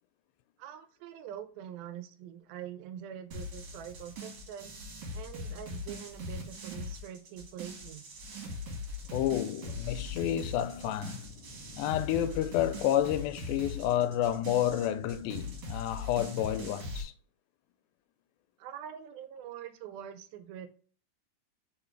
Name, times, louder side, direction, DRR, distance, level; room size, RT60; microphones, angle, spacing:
voice 1, 0.6-4.7 5.1-8.1 18.6-20.7, right 10 dB, 85° right, 2.5 m, -44 dB
sound 1, 3.3-17.0, left 2 dB, 55° right, 2.6 m, -41 dB
voice 2, 9.1-11.2 11.8-17.1, left 11 dB, 90° left, 2.4 m, -30 dB
sound 2, 9.6-15.5, left 4 dB, 65° left, 1.6 m, -51 dB
5.3 x 4.0 x 4.4 m
omnidirectional pair, 4.1 m